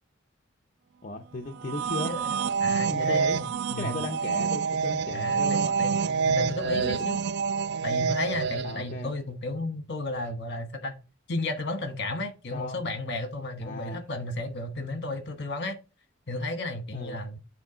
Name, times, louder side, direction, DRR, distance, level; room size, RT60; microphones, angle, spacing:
voice 1, 1.0-2.1 2.9-3.4 3.8-6.3 6.6-7.0 8.6-9.2 12.5-12.8 13.6-14.0 16.9-17.2, left 2 dB, 40° left, 0.7 m, -36 dB
sound 1, 1.5-8.9, right 6 dB, 55° right, 0.3 m, -27 dB
voice 2, 2.0-3.9 5.1-5.9 6.3-7.2 7.8-10.9 11.3-15.8 16.3-17.4, left 2 dB, 60° left, 1.3 m, -33 dB
8.4 x 3.7 x 5.0 m
head